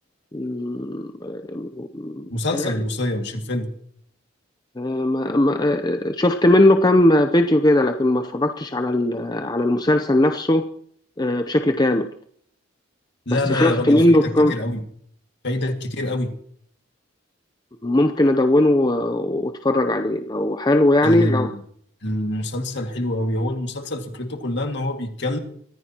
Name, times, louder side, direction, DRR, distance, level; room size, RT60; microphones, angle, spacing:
voice 1, 0.3-2.3 2.5-2.7 4.8-10.7 11.2-12.1 13.3-14.6 17.8-21.5, left 1 dB, 20° left, 6 dB, 0.7 m, -19 dB
voice 2, 2.3-3.7 13.3-14.8 15.4-16.3 21.0-21.6 22.0-25.4, left 1 dB, 60° left, 4 dB, 2.2 m, -25 dB
23.5 x 14.5 x 3.0 m, 0.63 s
head